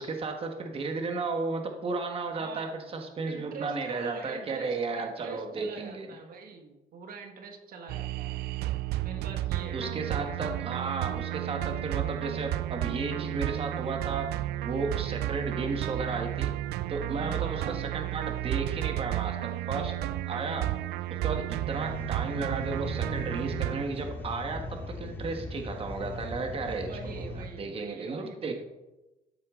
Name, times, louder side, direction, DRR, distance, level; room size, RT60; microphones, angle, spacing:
voice 1, 0.0-6.1 9.7-14.3 14.6-16.5 16.9-20.0 20.3-20.8 21.1-28.5, right 4 dB, 35° right, 4 dB, 1.5 m, -34 dB
voice 2, 2.3-2.7 3.2-8.4 9.0-9.8 17.1-17.8 26.7-28.5, right 4 dB, 60° right, 4 dB, 1.6 m, -44 dB
sound 1, 7.9-23.9, right 15 dB, 75° right, 0.4 m, -32 dB
sound 2, 21.7-27.5, left 1 dB, 10° left, 2.0 m, -39 dB
13.0 x 8.5 x 3.8 m, 1.0 s
cardioid pair, 110°, 17 cm